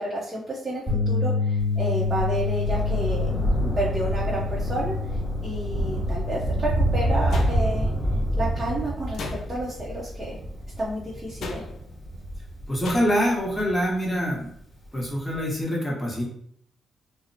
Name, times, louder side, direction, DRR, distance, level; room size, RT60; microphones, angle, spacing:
voice 1, 0.0-3.3 3.8-5.2 5.4-7.9 8.4-10.3 10.8-11.6, right 1 dB, 35° right, -6 dB, 0.7 m, -30 dB
sound 1, 0.9-7.1, left 4 dB, 10° right, 1.4 m, -28 dB
Thunder, 1.6-14.5 15.3-15.4, right 1 dB, 45° left, 1.1 m, -28 dB
sound 2, 7.3-8.0 9.1-9.8 11.4-12.0 12.8-13.4, left 3 dB, 70° left, 0.3 m, -37 dB
voice 2, 12.7-14.5 14.9-16.2, equal, 15° left, -4 dB, 1.1 m, -25 dB
2.8 x 2.0 x 2.7 m, 0.67 s
cardioid pair, 65°, 0 cm